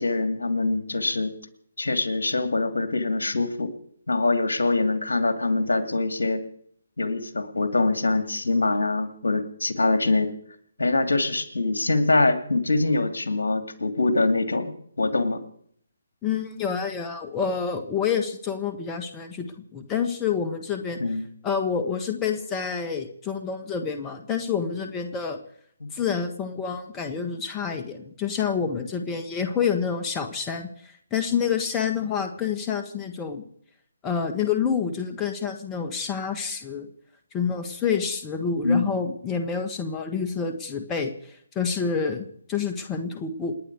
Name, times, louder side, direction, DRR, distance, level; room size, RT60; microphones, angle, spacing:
voice 1, 0.0-1.3 1.8-3.7 4.1-6.4 7.0-10.3 10.8-15.4 21.0-21.3 25.8-25.9 38.6-38.9, left 3 dB, 75° left, 9 dB, 2.5 m, -24 dB
voice 2, 16.2-21.0 21.4-25.4 25.9-33.4 34.0-36.9 37.3-43.5, left 6 dB, 15° left, 6 dB, 1.7 m, -28 dB
29.0 x 10.0 x 4.8 m, 0.65 s
figure-of-eight pair, 145°, 0 cm